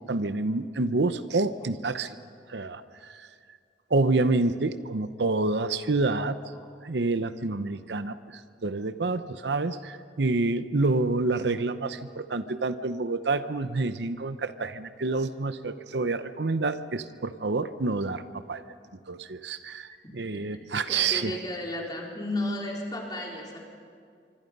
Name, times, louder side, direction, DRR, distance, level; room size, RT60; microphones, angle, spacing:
voice 1, 0.0-2.2 2.5-3.3 3.9-6.4 6.8-18.6 19.1-21.3, right 3 dB, 75° right, 12 dB, 0.8 m, -28 dB
voice 2, 20.9-23.6, left 1 dB, 25° left, -1 dB, 4.3 m, -33 dB
25.0 x 25.0 x 5.4 m, 2.2 s
head